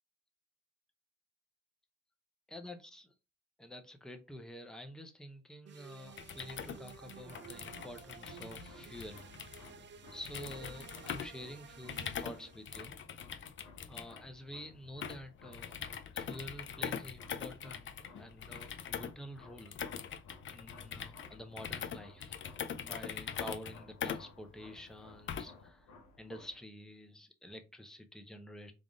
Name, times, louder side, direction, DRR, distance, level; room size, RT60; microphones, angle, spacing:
voice 1, 2.5-3.1 3.6-9.3 10.1-13.0 13.9-15.8 16.1-19.8 20.5-22.4 22.8-28.7, left 1 dB, ahead, 0.6 m, -49 dB
sound 1, 5.7-12.8, right 7 dB, 40° right, 0.4 m, -53 dB
sound 2, 6.1-25.7, left 7 dB, 40° left, 0.5 m, -43 dB
sound 3, 7.2-26.6, left 3 dB, 90° left, 0.9 m, -59 dB
3.5 x 2.5 x 3.7 m
cardioid pair, 90°, 30 cm